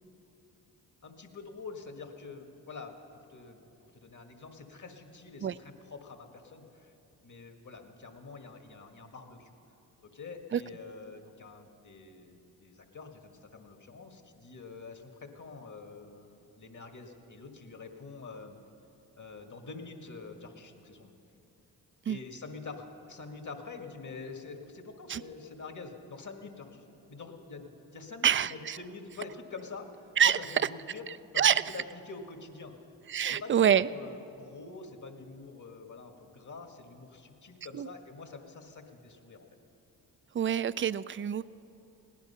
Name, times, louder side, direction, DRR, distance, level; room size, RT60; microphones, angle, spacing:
voice 1, 1.0-6.9 7.2-9.5 10.0-18.6 19.2-21.1 22.1-31.0 31.3-32.7 33.2-39.5, left 4 dB, 45° left, 4 dB, 1.9 m, -46 dB
voice 2, 28.2-28.8 30.2-30.4 31.4-31.6 33.1-33.9 37.7-37.9 40.3-41.4, right 9 dB, 30° right, 17 dB, 0.4 m, -26 dB
18.0 x 10.5 x 5.7 m, 2.9 s
supercardioid pair, 45°, 43 cm